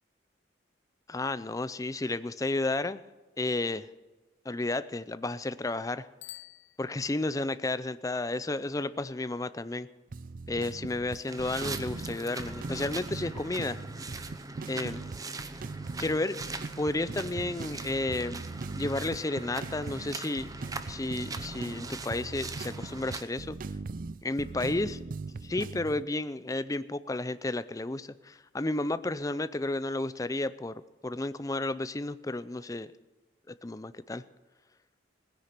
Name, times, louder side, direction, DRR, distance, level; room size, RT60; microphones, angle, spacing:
voice 1, 1.1-3.0 3.4-3.9 4.4-6.1 6.8-9.9 10.5-13.8 14.7-15.0 16.0-16.4 16.8-18.4 18.7-20.5 20.9-23.6 24.2-25.0 25.4-32.9 33.6-34.2, left 2 dB, 20° left, 14 dB, 0.5 m, -32 dB
Bicycle bell, 6.2-7.5, left 16 dB, 80° left, 0.6 m, -49 dB
sound 1, 10.1-26.0, right 3 dB, 45° right, 0.4 m, -40 dB
sound 2, 11.3-23.2, right 3 dB, 20° right, 0.8 m, -41 dB
18.5 x 10.0 x 6.7 m, 1.2 s
head